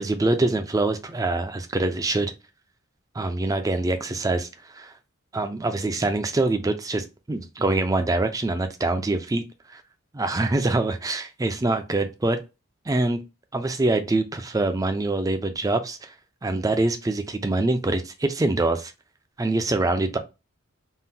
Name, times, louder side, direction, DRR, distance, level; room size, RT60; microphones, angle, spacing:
voice 1, 0.0-2.3 3.1-4.9 5.3-9.4 9.7-9.8 10.1-12.4 12.9-13.2 13.5-16.1 16.4-18.9 19.4-20.2, right 2 dB, 15° right, 0.4 m, -24 dB
3.6 x 2.2 x 2.7 m
head